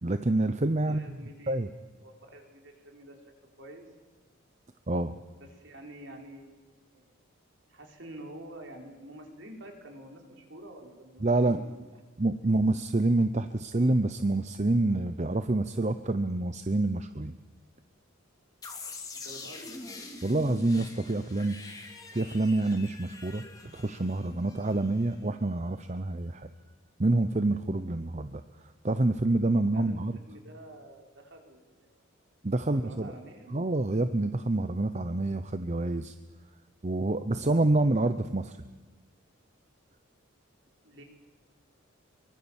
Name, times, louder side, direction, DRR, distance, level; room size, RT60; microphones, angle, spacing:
voice 1, 0.0-1.2 1.5-1.7 4.9-5.2 11.2-11.6 12.2-17.4 20.2-21.6 22.1-23.4 23.7-26.5 27.0-28.4 28.8-30.2 32.4-33.1 33.5-36.1 36.8-38.6, right 2 dB, 35° right, 10 dB, 0.7 m, -27 dB
voice 2, 0.8-3.2 3.6-3.8 5.4-7.1 7.7-11.8 19.1-19.8 29.5-31.9 32.6-33.5 40.8-41.0, right 1 dB, 60° right, 2 dB, 4.6 m, -48 dB
sound 1, 18.6-25.4, left 2 dB, 15° left, 2.9 m, -44 dB
24.0 x 24.0 x 7.3 m, 1.3 s
head